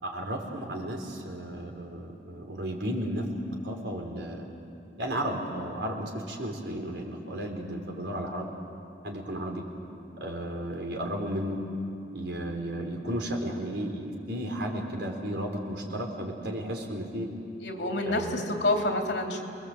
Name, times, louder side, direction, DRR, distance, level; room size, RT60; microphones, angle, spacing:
voice 1, 0.0-3.2 3.6-4.5 5.0-8.5 9.0-9.6 10.2-11.6 12.1-17.3 18.0-18.5, right 1 dB, 80° right, 1 dB, 4.2 m, -34 dB
voice 2, 17.6-19.4, left 2 dB, 75° left, 2 dB, 3.0 m, -28 dB
29.0 x 21.5 x 8.0 m, 2.6 s
head